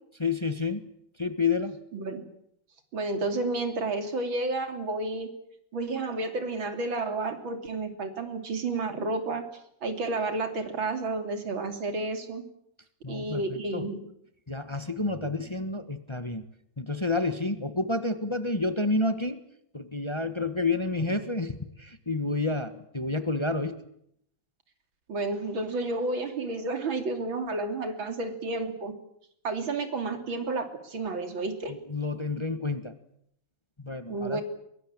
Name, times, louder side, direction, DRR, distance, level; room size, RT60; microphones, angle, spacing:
voice 1, 0.2-0.9 1.2-1.8 13.0-13.9 14.5-16.4 16.8-19.4 19.7-23.8 31.7-32.9 33.8-34.4, left 3 dB, 15° left, 10 dB, 1.3 m, -29 dB
voice 2, 1.9-2.2 2.9-5.3 5.7-9.4 9.8-12.4 13.1-14.0 25.1-28.9 29.4-31.7 34.1-34.4, right 3 dB, 90° right, 7 dB, 3.8 m, -31 dB
23.0 x 23.0 x 8.9 m, 0.73 s
omnidirectional pair, 2.1 m